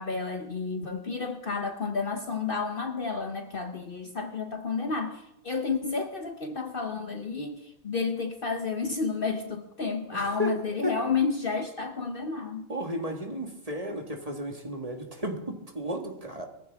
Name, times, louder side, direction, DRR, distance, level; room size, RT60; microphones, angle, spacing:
voice 1, 0.0-12.7, left 4 dB, 45° left, 6 dB, 1.0 m, -31 dB
voice 2, 10.1-10.9 12.7-16.5, equal, 25° right, 3 dB, 1.7 m, -33 dB
21.5 x 14.5 x 3.5 m, 0.87 s
omnidirectional pair, 1.4 m